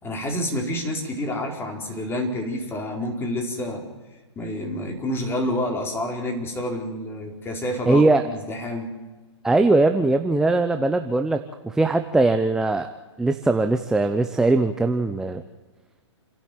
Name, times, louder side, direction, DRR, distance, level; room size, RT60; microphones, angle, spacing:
voice 1, 0.0-3.8 4.4-8.9, left 1 dB, 15° left, 2 dB, 4.6 m, -28 dB
voice 2, 7.9-8.2 9.4-12.9 13.2-15.4, right 2 dB, 5° right, 7 dB, 0.8 m, -20 dB
29.0 x 11.5 x 9.4 m, 1.2 s
hypercardioid pair, 125°, 15 cm